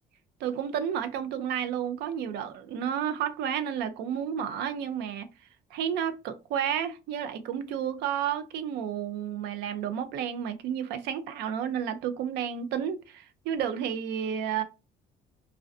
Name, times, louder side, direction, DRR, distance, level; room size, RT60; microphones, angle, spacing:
voice 1, 0.4-5.3 5.7-14.6, right 9 dB, 80° right, 0.4 m, -31 dB
2.4 x 2.1 x 2.3 m
cardioid pair, 110°, 17 cm